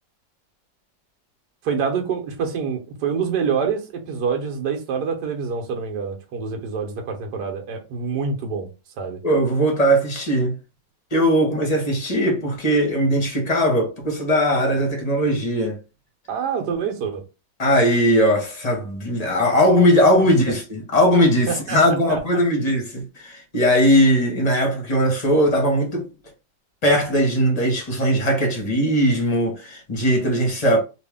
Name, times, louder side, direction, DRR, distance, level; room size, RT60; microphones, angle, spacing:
voice 1, 1.6-8.7 9.0-9.2 16.3-17.2 21.5-22.2, right 6 dB, 65° right, 1.4 m, -26 dB
voice 2, 9.2-10.6 11.1-15.8 17.6-26.1 26.8-30.8, equal, 30° left, 0.8 m, -19 dB
3.1 x 2.6 x 3.5 m
omnidirectional pair, 2.0 m